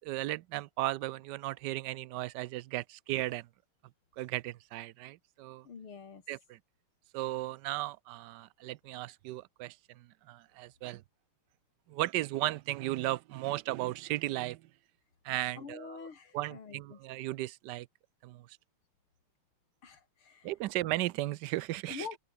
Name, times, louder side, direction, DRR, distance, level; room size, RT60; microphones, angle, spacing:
voice 1, 0.0-3.5 4.2-5.7 6.3-6.6 7.1-11.0 11.9-14.7 15.2-16.1 16.3-17.9 18.2-18.6 20.4-22.1, right 16 dB, 75° right, 1.0 m, -36 dB
voice 2, 5.6-6.2 15.6-17.0 19.8-20.5 21.9-22.2, left 6 dB, 85° left, 3.6 m, -45 dB
omnidirectional pair, 2.3 m